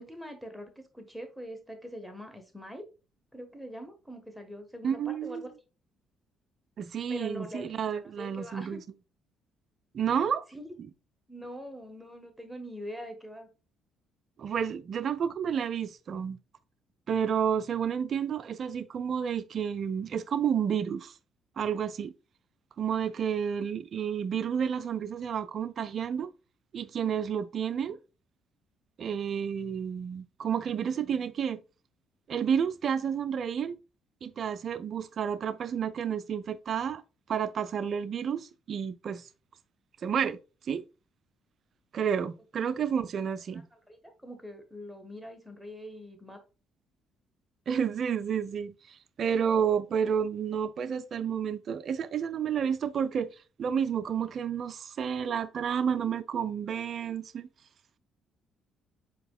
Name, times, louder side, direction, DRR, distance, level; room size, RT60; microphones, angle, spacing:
voice 1, 0.0-2.8 3.3-5.5 7.1-8.8 10.5-10.7 11.3-13.5 43.9-46.4, equal, 5° right, 1.3 m, -43 dB
voice 2, 4.8-5.5 6.8-8.8 9.9-10.4 14.4-16.4 17.1-21.1 21.6-22.1 22.8-26.3 26.7-28.0 29.0-31.6 32.3-33.8 34.2-37.0 37.3-39.3 40.0-40.4 40.7-40.8 41.9-43.7 47.7-53.3 53.6-57.5, right 7 dB, 45° right, 0.4 m, -30 dB
7.5 x 2.9 x 2.3 m
figure-of-eight pair, 45°, 0 cm